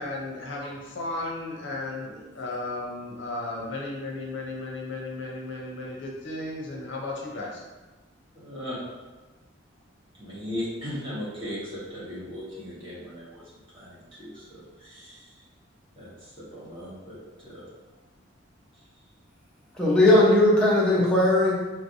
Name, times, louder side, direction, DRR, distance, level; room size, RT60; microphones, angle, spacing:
voice 1, 0.0-7.6, left 2 dB, 70° left, -2 dB, 0.8 m, -34 dB
voice 2, 8.3-8.8 10.2-13.4 13.7-15.3 15.9-17.7, left 1 dB, 25° right, -9 dB, 1.4 m, -38 dB
voice 3, 19.8-21.5, left 1 dB, 5° left, -7 dB, 0.8 m, -18 dB
4.3 x 3.2 x 2.7 m, 1.2 s
head